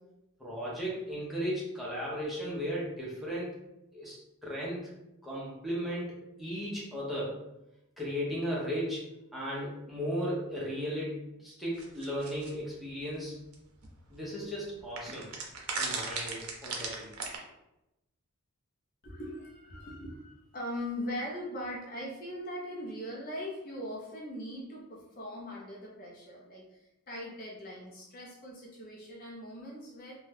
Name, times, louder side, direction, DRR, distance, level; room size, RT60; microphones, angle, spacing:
voice 1, 0.4-3.5 3.9-4.8 5.2-7.4 8.0-9.0 9.3-13.3 14.1-15.3 15.8-17.1, equal, ahead, -7 dB, 0.7 m, -36 dB
sound 1, 11.8-12.5 13.5-13.6 13.8-13.9 15.0-17.4, right 4 dB, 75° right, 0.6 m, -36 dB
voice 2, 19.0-30.2, left 1 dB, 40° left, -3 dB, 0.5 m, -40 dB
2.7 x 2.2 x 3.2 m, 0.90 s
head